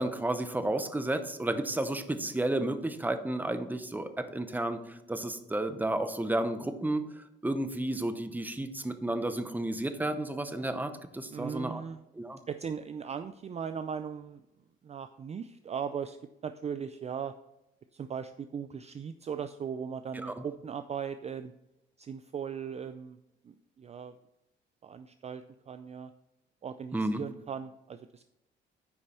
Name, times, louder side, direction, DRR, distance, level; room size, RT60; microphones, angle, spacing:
voice 1, 0.0-11.8 12.2-12.4 20.2-20.3 26.9-27.2, right 1 dB, 10° right, 9 dB, 0.8 m, -32 dB
voice 2, 11.3-12.0 12.5-14.4 14.8-16.2 16.4-17.3 17.9-21.5 22.0-23.2 23.4-24.2 24.8-26.1 26.6-28.2, right 7 dB, 35° right, 10 dB, 0.4 m, -38 dB
9.5 x 5.3 x 4.3 m, 0.88 s
cardioid pair, 90°, 20 cm